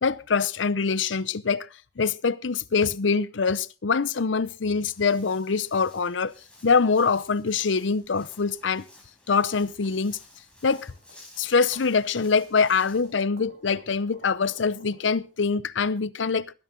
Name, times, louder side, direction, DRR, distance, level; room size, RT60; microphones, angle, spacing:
voice 1, 0.0-1.7 2.0-6.3 6.6-8.8 9.3-10.2 10.6-10.9 11.4-16.5, left 5 dB, 85° left, 0.7 m, -24 dB
Walk footsteps, 4.4-13.1, left 2 dB, 5° left, 5.2 m, -54 dB
sound 1, 10.4-15.6, right 2 dB, 85° right, 5.7 m, -52 dB
19.5 x 10.5 x 3.8 m
head